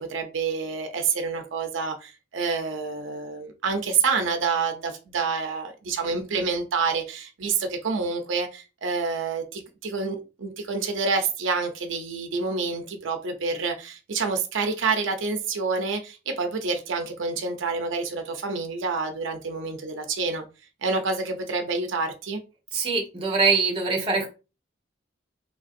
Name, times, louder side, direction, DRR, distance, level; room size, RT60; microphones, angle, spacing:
voice 1, 0.0-20.4 20.8-22.4, right 4 dB, 80° right, 5 dB, 0.5 m, -28 dB
voice 2, 22.7-24.3, right 4 dB, 25° right, 0 dB, 0.8 m, -23 dB
3.4 x 2.6 x 2.4 m, 0.30 s
head